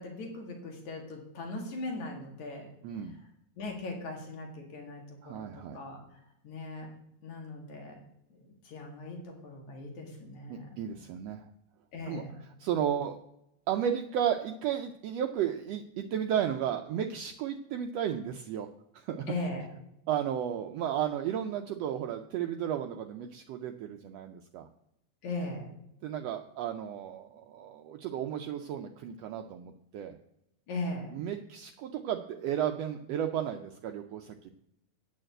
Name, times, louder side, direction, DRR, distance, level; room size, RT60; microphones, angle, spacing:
voice 1, 0.0-2.7 3.6-5.5 5.7-6.0 6.4-6.9 7.2-8.0 8.3-10.8 11.9-12.3 19.3-19.7 25.2-25.7 30.7-31.2, left 2 dB, 80° left, 1 dB, 3.6 m, -39 dB
voice 2, 2.8-3.1 5.2-5.8 10.5-11.4 12.1-12.2 12.6-13.2 13.7-18.7 18.9-19.3 20.1-24.7 26.0-30.1 31.1-34.5, right 9 dB, 75° right, 5 dB, 1.6 m, -33 dB
8.9 x 6.6 x 7.7 m, 0.82 s
omnidirectional pair, 3.3 m